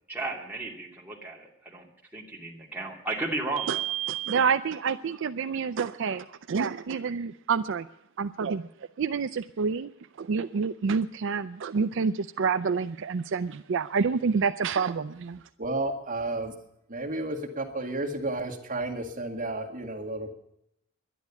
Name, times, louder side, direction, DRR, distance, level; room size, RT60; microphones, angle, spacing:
voice 1, 0.1-1.9 2.1-3.8, right 2 dB, 10° right, -3 dB, 2.5 m, -34 dB
voice 2, 3.6-7.9 8.2-8.6 9.0-9.9 10.2-15.4, right 5 dB, 60° right, 10 dB, 0.4 m, -28 dB
voice 3, 15.6-16.5 16.9-20.3, right 2 dB, 40° right, 1 dB, 1.9 m, -32 dB
11.5 x 11.0 x 8.2 m, 0.80 s
head